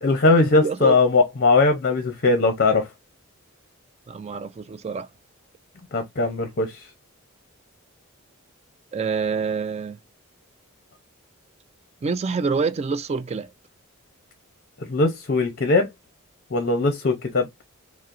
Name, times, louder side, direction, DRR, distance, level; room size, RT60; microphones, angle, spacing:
voice 1, 0.0-2.9 5.9-6.9 14.9-15.9 16.5-17.5, left 3 dB, 45° left, 0.6 m, -20 dB
voice 2, 0.6-1.0 4.1-5.1 8.9-10.0 12.0-13.5, right 5 dB, 30° right, 0.3 m, -26 dB
5.5 x 2.0 x 2.5 m
head